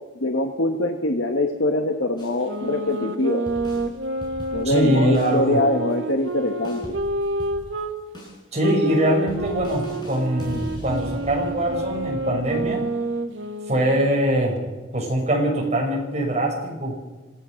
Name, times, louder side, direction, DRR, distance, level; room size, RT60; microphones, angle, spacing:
voice 1, 0.2-3.4 4.5-7.0, left 1 dB, 65° left, 4 dB, 1.4 m, -23 dB
sound 1, 2.2-2.4 2.9-3.0 3.5-7.9 8.1-8.4 8.9-9.0 9.3-12.6, equal, 20° left, 7.1 m, -40 dB
sound 2, 2.4-7.9 8.6-14.2, right 1 dB, 70° right, 1.9 m, -29 dB
voice 2, 4.6-5.6 8.5-12.9 13.7-14.6 14.9-17.0, right 1 dB, 35° right, 0 dB, 6.1 m, -23 dB
26.5 x 16.0 x 6.5 m, 1.3 s
head